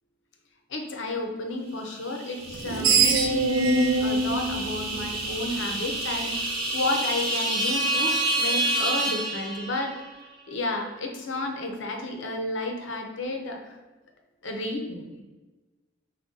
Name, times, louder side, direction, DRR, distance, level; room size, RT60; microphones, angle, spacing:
voice 1, 0.7-10.0 10.5-13.8 14.4-15.2, left 2 dB, 65° left, 3 dB, 0.7 m, -32 dB
sound 1, 2.1-10.1, right 2 dB, 50° right, 1.1 m, -29 dB
Screech, 2.5-5.7, right 3 dB, 80° right, 0.5 m, -24 dB
5.1 x 2.3 x 3.7 m, 1.2 s
head